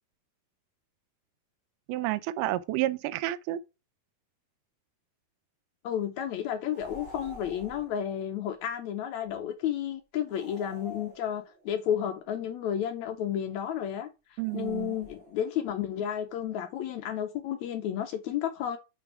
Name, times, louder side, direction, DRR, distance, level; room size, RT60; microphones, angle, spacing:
voice 1, 1.9-3.6 14.4-15.0, right 15 dB, 80° right, 2.0 m, -30 dB
voice 2, 5.8-14.1 14.5-18.8, left 9 dB, 80° left, 1.7 m, -32 dB
sound 1, 6.7-8.0 10.3-11.7 14.4-15.5, left 1 dB, 55° right, 0.6 m, -47 dB
7.1 x 3.3 x 5.8 m
omnidirectional pair, 3.9 m